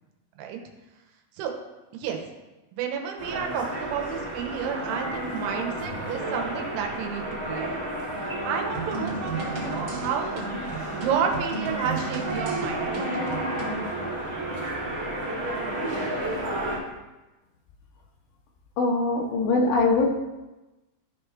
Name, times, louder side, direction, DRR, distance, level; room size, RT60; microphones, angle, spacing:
voice 1, 2.7-7.7 8.4-10.4 10.9-13.4, right 7 dB, 90° right, 3 dB, 3.3 m, -31 dB
sound 1, 3.2-16.8, right 1 dB, 70° right, 0.8 m, -31 dB
sound 2, 8.7-13.8, right 4 dB, 40° right, 2.1 m, -35 dB
voice 2, 18.8-20.1, left 3 dB, 75° left, 1 dB, 3.2 m, -22 dB
13.5 x 5.6 x 3.3 m, 1.1 s
omnidirectional pair, 5.4 m